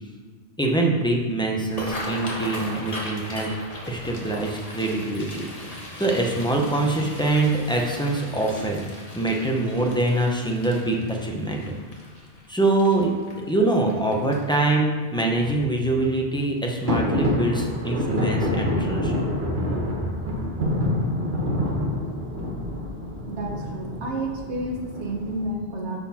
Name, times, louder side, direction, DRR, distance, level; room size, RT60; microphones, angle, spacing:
voice 1, 0.6-3.5 3.9-5.4 6.0-8.8 9.1-11.6 12.5-13.1 13.5-19.1 19.4-19.5, right 2 dB, 5° left, 0 dB, 0.9 m, -24 dB
sound 1, 1.6-14.7 15.2-15.5 15.8-16.2 16.6-16.8 18.0-18.2 18.6-18.7 19.2-19.3, left 1 dB, 35° left, 1.4 m, -38 dB
sound 2, 16.9-25.4, left 1 dB, 50° right, 1.4 m, -27 dB
voice 2, 23.3-26.0, right 1 dB, 85° right, 0 dB, 1.5 m, -30 dB
11.5 x 4.3 x 4.3 m, 1.5 s
omnidirectional pair, 1.1 m